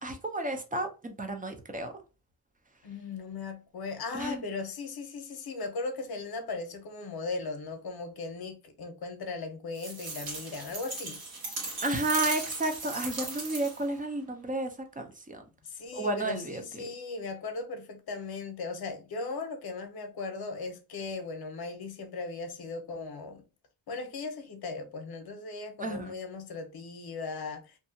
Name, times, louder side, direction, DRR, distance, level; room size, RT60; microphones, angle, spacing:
voice 1, 0.0-1.9 4.1-4.4 11.8-14.7 15.0-15.4 15.9-16.8 25.8-26.1, right 2 dB, 20° right, 0.5 m, -32 dB
voice 2, 2.8-11.2 15.7-23.4 23.9-27.8, left 3 dB, 65° left, 0.8 m, -38 dB
sound 1, 9.7-13.9, right 3 dB, 60° right, 1.1 m, -37 dB
2.6 x 2.3 x 2.6 m
wide cardioid pair, 130°, 40 cm